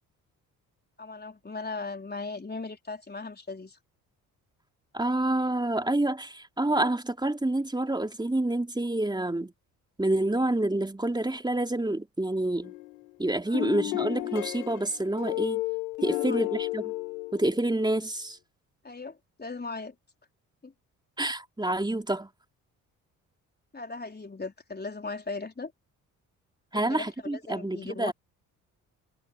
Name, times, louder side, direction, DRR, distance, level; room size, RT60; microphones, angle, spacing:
voice 1, 1.0-3.8 13.4-13.7 16.1-16.5 18.8-20.0 20.6-20.7 23.7-25.7 26.7-28.1, left 3 dB, 25° left, 4.0 m, -38 dB
voice 2, 4.9-9.5 10.0-12.7 13.2-15.6 16.0-16.9 17.3-18.4 21.2-22.3 26.7-28.1, right 1 dB, 10° right, 3.3 m, -28 dB
sound 1, 12.6-13.1 13.5-17.8, left 22 dB, 85° left, 0.7 m, -32 dB
hypercardioid pair, 45°, 42 cm